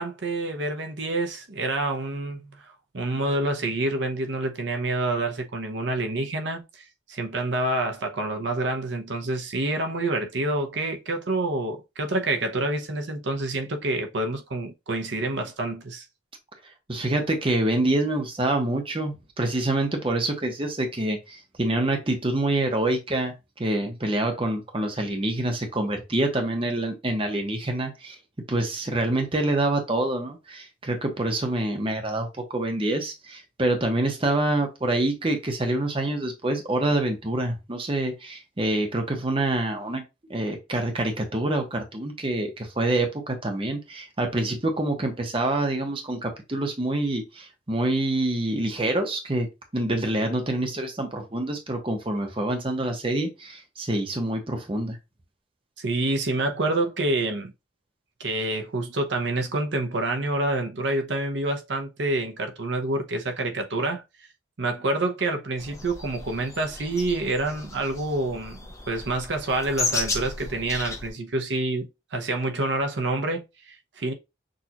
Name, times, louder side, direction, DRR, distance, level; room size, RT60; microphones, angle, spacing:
voice 1, 0.0-16.0 55.8-57.5 58.2-64.0 64.6-68.6 68.9-74.1, right 2 dB, 70° right, 0.8 m, -27 dB
voice 2, 16.9-28.2 28.5-40.0 40.3-49.5 49.7-55.0, right 1 dB, 30° right, 0.9 m, -26 dB
sound 1, 65.6-71.1, left 3 dB, 15° left, 0.8 m, -34 dB
6.3 x 2.5 x 2.9 m
head